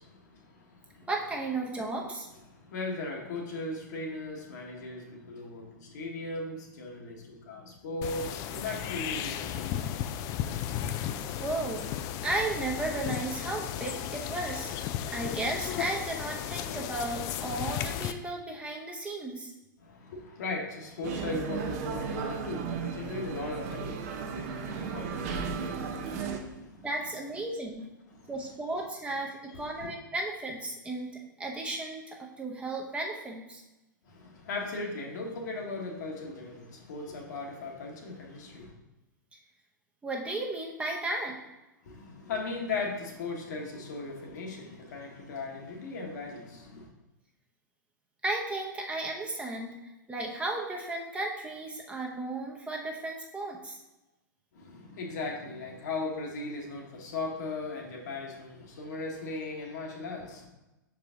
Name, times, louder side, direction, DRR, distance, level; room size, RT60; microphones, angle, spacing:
voice 1, 0.0-1.1 2.0-2.1 2.5-9.7 19.8-26.9 28.1-28.3 29.5-29.9 34.0-38.7 41.8-46.9 54.5-60.5, left 3 dB, 60° left, 1 dB, 1.4 m, -38 dB
voice 2, 1.1-2.3 11.4-11.9 12.2-19.5 26.8-27.8 28.3-33.6 40.0-41.4 48.2-49.8 50.1-53.8, right 2 dB, 10° right, -1 dB, 0.8 m, -34 dB
sound 1, 8.0-18.1, left 10 dB, 35° left, 0.4 m, -35 dB
sound 2, 21.0-26.4, right 5 dB, 45° right, 0.7 m, -35 dB
5.8 x 4.8 x 3.7 m, 1.0 s
figure-of-eight pair, 105°, 11 cm